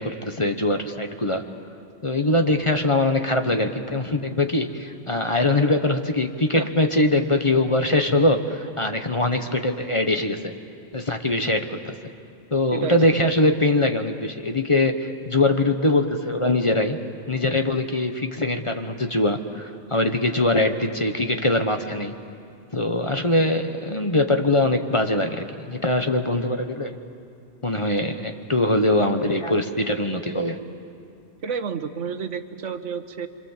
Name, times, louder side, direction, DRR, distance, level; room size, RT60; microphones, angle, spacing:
voice 1, 0.0-1.4 2.0-10.5 10.9-12.0 12.5-17.0 17.3-22.1 22.7-27.0 27.6-30.6, left 2 dB, 25° left, 6 dB, 1.0 m, -22 dB
voice 2, 12.7-13.4 31.4-33.3, right 6 dB, 75° right, 9 dB, 1.4 m, -30 dB
27.0 x 26.0 x 7.3 m, 2.5 s
omnidirectional pair, 1.3 m